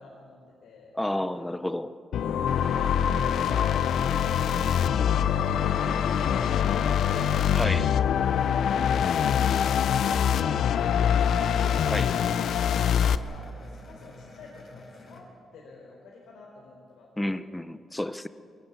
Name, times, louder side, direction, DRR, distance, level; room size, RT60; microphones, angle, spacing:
voice 1, 0.0-0.9 1.3-1.5 2.5-4.0 4.7-7.4 12.8-17.4, left 3 dB, 90° left, 4.3 m, -48 dB
voice 2, 0.9-2.0 7.5-8.0 11.9-12.2 17.2-18.3, left 1 dB, 10° left, 0.7 m, -31 dB
sound 1, 2.1-13.2, left 8 dB, 75° left, 0.7 m, -24 dB
sound 2, 3.1-15.2, left 3 dB, 45° left, 4.6 m, -49 dB
22.5 x 18.0 x 8.4 m
cardioid pair, 120°, 0 cm